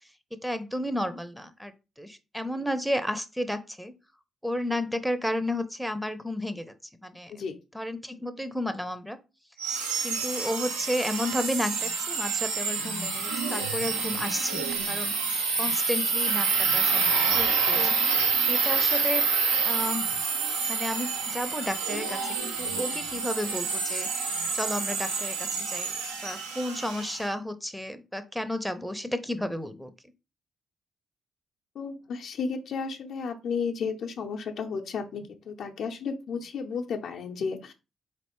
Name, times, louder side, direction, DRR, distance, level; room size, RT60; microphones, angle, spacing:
voice 1, 0.3-3.9 4.4-6.7 7.0-7.3 7.7-9.2 10.0-15.1 15.6-17.3 17.7-18.0 18.5-19.3 19.6-20.1 20.7-24.1 24.5-29.9, left 1 dB, ahead, 10 dB, 0.6 m, -32 dB
sound 1, 9.6-27.3, right 5 dB, 85° right, 0.7 m, -28 dB
voice 2, 17.3-17.9 31.7-37.7, left 5 dB, 65° left, 3 dB, 0.6 m, -33 dB
4.0 x 3.3 x 3.0 m, 0.28 s
hypercardioid pair, 40°, 0 cm